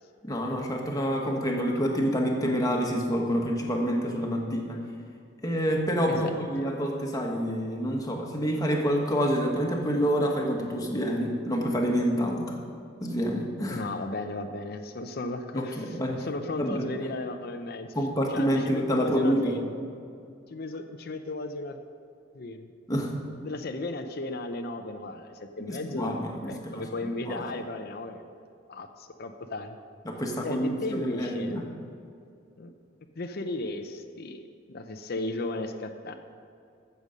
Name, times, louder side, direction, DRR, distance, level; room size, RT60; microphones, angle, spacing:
voice 1, 0.2-4.8 5.4-12.6 13.0-13.8 15.5-16.1 16.6-16.8 17.9-19.5 22.9-23.1 25.7-27.4 30.0-31.6, equal, 20° left, 0 dB, 1.5 m, -27 dB
voice 2, 13.7-17.9 18.3-19.6 20.5-21.8 22.3-22.7 23.4-26.1 26.5-28.2 28.7-29.8 30.4-31.7 32.6-32.7 33.2-36.2, left 2 dB, 55° left, 6 dB, 0.6 m, -35 dB
14.5 x 7.0 x 5.2 m, 2.5 s
head